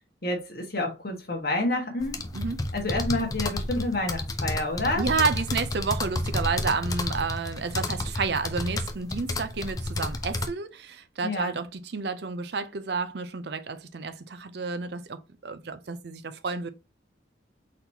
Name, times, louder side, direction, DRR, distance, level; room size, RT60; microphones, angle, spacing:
voice 1, 0.2-2.2 2.7-5.1 11.2-11.5, left 2 dB, 55° left, 1.4 m, -28 dB
sound 1, 2.0-10.5, left 2 dB, 20° left, 0.4 m, -31 dB
voice 2, 2.3-2.7 4.9-16.7, right 4 dB, 65° right, 0.5 m, -30 dB
4.2 x 4.1 x 2.8 m
head